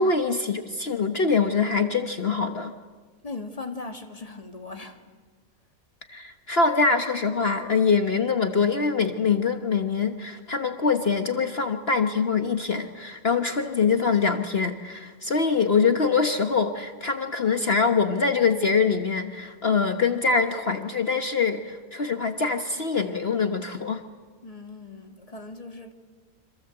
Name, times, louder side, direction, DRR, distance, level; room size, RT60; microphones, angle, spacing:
voice 1, 0.0-2.7 6.1-24.0, left 5 dB, 45° left, 1.4 m, -24 dB
voice 2, 3.2-5.0 24.4-25.9, left 3 dB, 25° left, 2.2 m, -38 dB
28.0 x 26.5 x 7.9 m
omnidirectional pair, 1.5 m